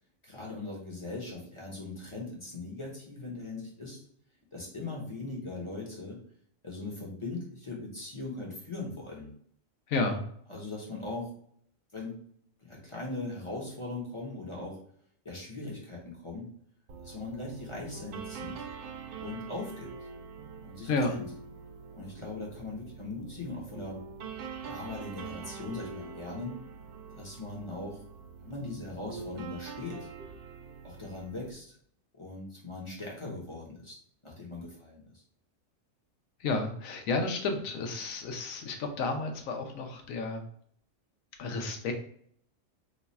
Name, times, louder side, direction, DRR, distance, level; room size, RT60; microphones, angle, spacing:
voice 1, 0.2-4.0 4.5-6.2 6.6-9.3 10.5-11.3 11.9-12.1 12.6-14.8 15.2-16.5 17.0-18.6 19.2-19.9 20.6-21.2 21.9-24.0 24.7-26.6 27.1-28.0 28.4-30.1 30.8-31.8 32.1-34.0 34.2-35.0, left 2 dB, 30° left, -3 dB, 0.7 m, -40 dB
voice 2, 9.9-10.2 20.9-21.1 36.4-40.4 41.4-41.9, left 3 dB, 80° left, 4 dB, 1.1 m, -31 dB
sound 1, 16.9-31.5, right 6 dB, 65° right, 0.6 m, -44 dB
3.1 x 2.3 x 4.0 m, 0.63 s
omnidirectional pair, 1.4 m